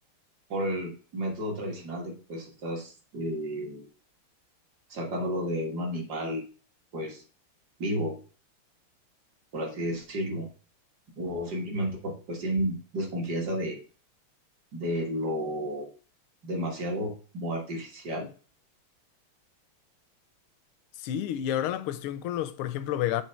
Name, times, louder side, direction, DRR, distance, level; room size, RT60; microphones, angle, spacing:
voice 1, 0.5-3.9 4.9-6.4 6.9-7.2 7.8-8.1 9.5-10.5 11.2-13.8 14.7-15.9 16.4-18.3, equal, 50° right, 1.9 m, -32 dB
voice 2, 21.0-23.2, left 11 dB, 80° left, 1.4 m, -30 dB
7.3 x 3.1 x 4.3 m
omnidirectional pair, 2.4 m